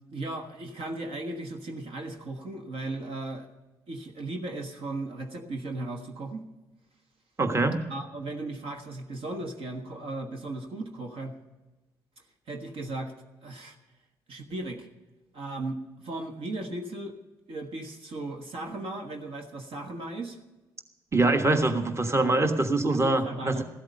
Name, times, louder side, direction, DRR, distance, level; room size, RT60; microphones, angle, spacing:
voice 1, 0.1-3.5 3.9-6.4 7.9-11.4 12.5-13.1 13.4-13.8 14.3-14.9 15.3-17.2 17.5-20.4 22.9-23.6, right 2 dB, 55° right, 4 dB, 1.4 m, -36 dB
voice 2, 7.4-7.8 21.1-23.6, right 2 dB, 25° right, 6 dB, 1.4 m, -24 dB
15.0 x 13.0 x 5.4 m, 1.1 s
figure-of-eight pair, 40°, 11 cm